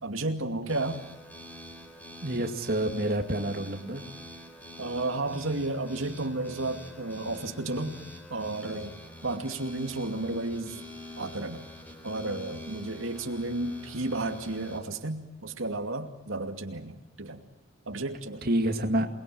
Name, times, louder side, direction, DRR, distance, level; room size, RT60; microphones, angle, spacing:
voice 1, 0.0-1.0 4.8-8.0 8.3-10.8 11.2-11.7 12.0-17.4 17.9-18.4, right 2 dB, 90° right, 5 dB, 2.6 m, -32 dB
sound 1, 0.7-14.8, left 1 dB, 10° left, 4.5 m, -46 dB
voice 2, 2.2-4.1 18.4-19.1, right 1 dB, 50° right, 4 dB, 2.3 m, -28 dB
28.0 x 21.5 x 7.8 m, 0.93 s
head